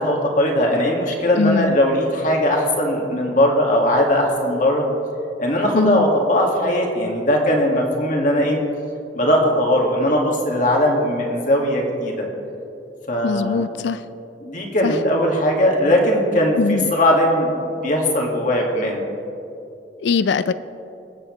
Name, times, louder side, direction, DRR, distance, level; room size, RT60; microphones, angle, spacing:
voice 1, 0.0-4.9 5.4-8.6 9.1-12.3 13.1-13.6 14.4-19.0, left 1 dB, 45° left, 0 dB, 2.0 m, -19 dB
voice 2, 1.4-1.8 5.7-6.1 13.2-14.0 14.8-14.9 16.6-16.9 20.0-20.5, left 4 dB, 70° left, 14 dB, 0.4 m, -21 dB
24.5 x 8.6 x 3.2 m, 2.8 s
head